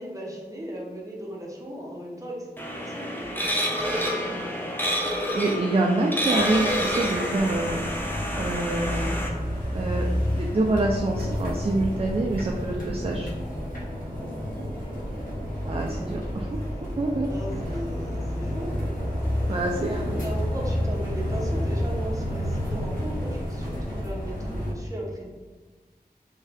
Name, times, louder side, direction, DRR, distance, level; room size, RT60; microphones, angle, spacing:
voice 1, 0.0-4.7 14.1-14.3 15.7-16.4 17.2-18.8 19.5-25.3, equal, 20° right, -3 dB, 0.9 m, -37 dB
sound 1, 2.6-9.3, equal, 10° left, 0.6 m, -28 dB
voice 2, 5.3-7.8 8.4-9.2 9.7-10.0 10.3-13.3 15.6-16.5 17.0-17.3 19.5-20.2, right 2 dB, 35° right, 0 dB, 0.4 m, -26 dB
sound 2, 6.3-24.7, equal, 55° left, 1.2 m, -30 dB
3.5 x 2.7 x 3.3 m, 1.3 s
wide cardioid pair, 50°, 16 cm